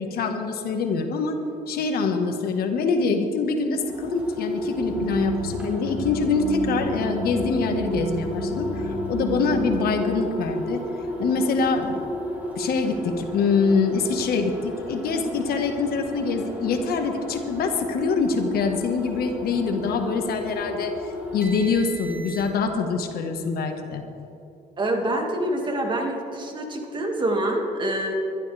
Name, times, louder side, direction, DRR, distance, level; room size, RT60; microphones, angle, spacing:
voice 1, 0.0-1.4 1.7-10.8 11.2-12.0 12.5-24.0, left 4 dB, 65° left, 5 dB, 1.5 m, -25 dB
sound 1, 3.8-22.8, equal, 10° right, 3.8 m, -33 dB
sound 2, 4.8-9.8, equal, 50° left, 3.1 m, -32 dB
voice 2, 24.8-28.1, right 1 dB, 25° right, 2 dB, 2.1 m, -26 dB
23.0 x 12.5 x 3.5 m, 2.7 s
cardioid pair, 110°, 17 cm